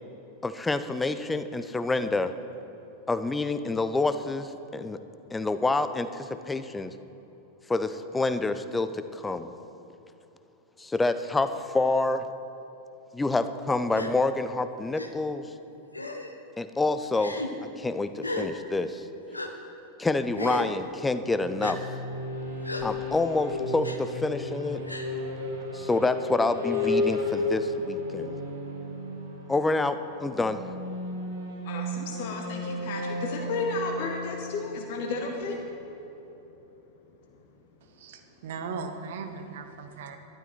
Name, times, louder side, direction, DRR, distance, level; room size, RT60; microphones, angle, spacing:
voice 1, 0.4-2.3 3.1-5.0 5.3-6.9 7.7-9.5 10.8-12.2 13.1-15.4 16.6-17.4 17.8-19.0 20.0-21.8 22.8-24.8 25.7-28.3 29.5-30.6, left 3 dB, 10° left, 11 dB, 0.5 m, -27 dB
Gasp, 13.9-14.1 15.0-15.1 15.9-16.3 17.1-17.5 18.2-18.5 19.3-19.5 20.3-20.7 21.6-21.8 22.6-22.9 23.8-24.0 24.9-25.1, left 2 dB, 85° left, 0.9 m, -34 dB
sound 1, 21.2-35.8, left 2 dB, 70° right, 2.0 m, -34 dB
voice 2, 31.7-35.6, left 3 dB, 50° left, 1 dB, 1.3 m, -33 dB
voice 3, 38.0-40.2, right 5 dB, 55° right, 7 dB, 1.1 m, -38 dB
12.0 x 11.5 x 4.5 m, 3.0 s
figure-of-eight pair, 90°, 0 cm